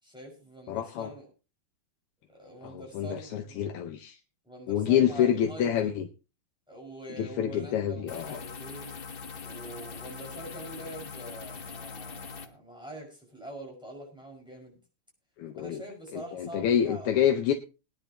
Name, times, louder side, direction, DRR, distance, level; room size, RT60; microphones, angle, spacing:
voice 1, 0.0-1.3 2.3-3.7 4.4-6.0 6.7-8.9 9.4-14.8 15.5-17.3, right 1 dB, ahead, -2 dB, 5.7 m, -44 dB
voice 2, 0.7-1.1 2.7-4.2 4.7-6.1 7.2-8.4 15.4-15.8 16.1-17.5, left 9 dB, 90° left, 6 dB, 1.8 m, -27 dB
sound 1, 8.1-12.5, left 5 dB, 55° left, 0.6 m, -42 dB
20.0 x 10.0 x 3.0 m, 0.31 s
omnidirectional pair, 2.4 m